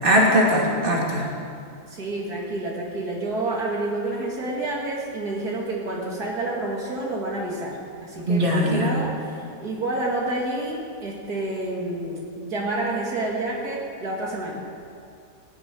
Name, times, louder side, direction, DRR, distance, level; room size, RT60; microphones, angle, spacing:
voice 1, 0.0-1.2 8.3-9.0, equal, 30° right, -3 dB, 2.8 m, -20 dB
voice 2, 1.9-14.8, right 2 dB, 70° right, -3 dB, 2.7 m, -29 dB
17.5 x 7.9 x 9.8 m, 2.4 s
omnidirectional pair, 1.7 m